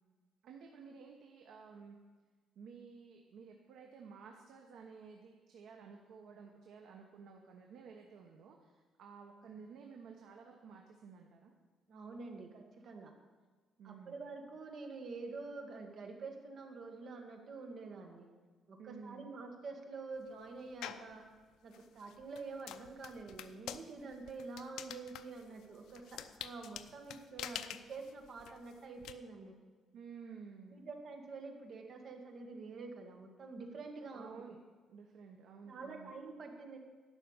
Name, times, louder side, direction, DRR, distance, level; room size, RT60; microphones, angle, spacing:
voice 1, 0.4-2.0 2.5-11.5 13.8-14.2 18.8-19.3 29.9-30.9 34.1-34.6 34.9-36.1, right 5 dB, 65° right, 2 dB, 1.0 m, -53 dB
voice 2, 11.9-13.1 13.8-18.3 18.7-21.2 21.6-29.5 30.7-34.4 35.7-36.8, right 3 dB, 40° right, 3 dB, 1.6 m, -47 dB
sound 1, 20.8-21.1 21.7-29.1, left 10 dB, 80° left, 0.5 m, -47 dB
12.0 x 5.8 x 8.7 m, 1.4 s
cardioid pair, 175°, 0 cm